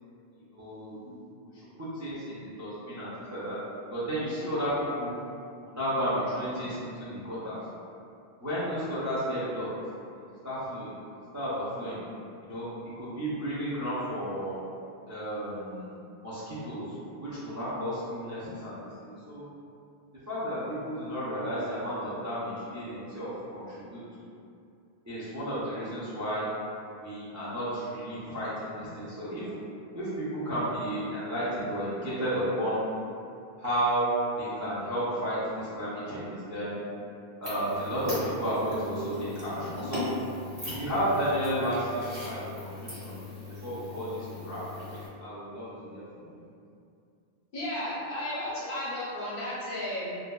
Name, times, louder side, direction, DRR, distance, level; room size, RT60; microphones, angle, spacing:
voice 1, 0.3-1.5 1.8-3.6 3.9-5.2 5.6-7.6 8.4-9.7 10.4-10.9 11.3-12.0 12.4-12.7 13.0-14.6 15.1-16.0 16.2-19.4 20.3-24.3 25.1-26.4 27.0-29.5 29.9-32.8 33.6-36.8 37.4-40.1 40.6-43.2 43.6-44.6 45.2-46.5, equal, 25° right, -11 dB, 0.3 m, -32 dB
sound 1, 37.4-45.1, left 2 dB, 65° right, 1.4 m, -39 dB
voice 2, 47.5-50.2, left 1 dB, 60° left, -8 dB, 0.8 m, -33 dB
2.6 x 2.2 x 2.2 m, 2.5 s
omnidirectional pair, 1.1 m